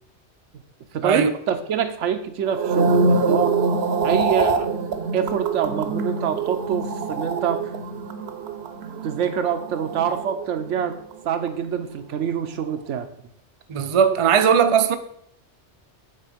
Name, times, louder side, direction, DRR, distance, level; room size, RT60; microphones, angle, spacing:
voice 1, 0.9-3.6 4.0-4.7 5.1-7.6 9.0-11.0 11.2-13.1, right 8 dB, 90° right, 1.0 m, -25 dB
sound 1, 2.4-10.8 11.1-11.5, right 4 dB, 65° right, 0.9 m, -24 dB
voice 2, 13.7-14.9, right 7 dB, 45° right, 0.4 m, -18 dB
8.3 x 3.7 x 5.1 m
omnidirectional pair, 1.2 m